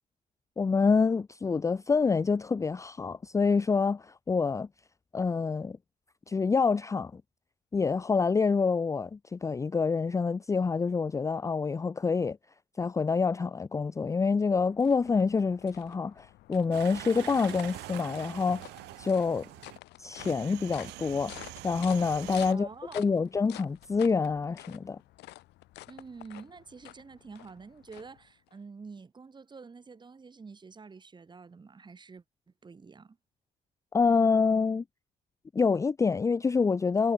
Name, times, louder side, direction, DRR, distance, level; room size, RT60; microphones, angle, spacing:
voice 1, 0.6-4.7 5.1-5.8 6.3-7.2 7.7-12.4 12.8-18.6 19.0-19.5 20.0-21.3 21.6-22.7 22.9-25.0 33.9-34.8 35.5-37.1, left 5 dB, 20° left, 0.5 m, -27 dB
sound 1, 14.1-28.6, left 18 dB, 85° left, 6.2 m, -50 dB
sound 2, 16.7-19.8 20.2-22.5, right 19 dB, 85° right, 1.0 m, -44 dB
voice 2, 22.5-23.2 25.9-32.2 32.6-33.2, right 4 dB, 25° right, 7.4 m, -48 dB
cardioid pair, 110°, 17 cm